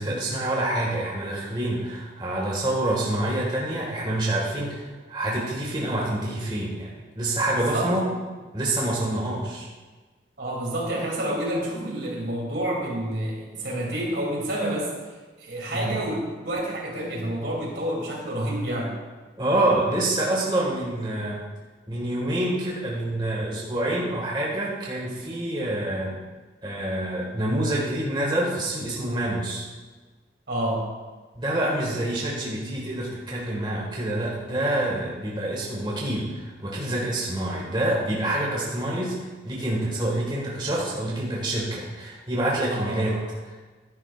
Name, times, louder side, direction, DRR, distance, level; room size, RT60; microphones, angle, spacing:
voice 1, 0.0-8.1 8.5-9.7 15.7-15.9 19.4-21.4 21.9-26.2 26.6-29.7 31.4-39.2 39.4-43.6, right 1 dB, 25° right, -4 dB, 1.8 m, -27 dB
voice 2, 7.5-8.1 10.4-14.9 15.4-18.9 30.5-30.8 42.7-43.0, right 1 dB, 75° right, -2 dB, 2.9 m, -29 dB
13.0 x 10.5 x 2.5 m, 1.3 s
head